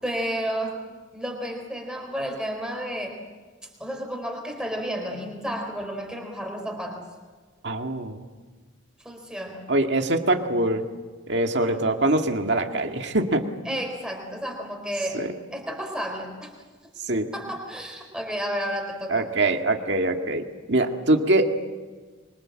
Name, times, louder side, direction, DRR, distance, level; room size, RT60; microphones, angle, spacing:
voice 1, 0.0-3.2 3.8-7.1 9.0-9.7 11.6-11.8 13.7-16.5 17.3-19.3, equal, 5° right, 2 dB, 3.8 m, -32 dB
voice 2, 7.6-8.3 9.7-10.8 11.3-13.8 15.1-15.3 17.1-17.3 19.1-21.5, right 2 dB, 55° right, 4 dB, 2.1 m, -23 dB
25.5 x 24.0 x 7.7 m, 1.4 s
head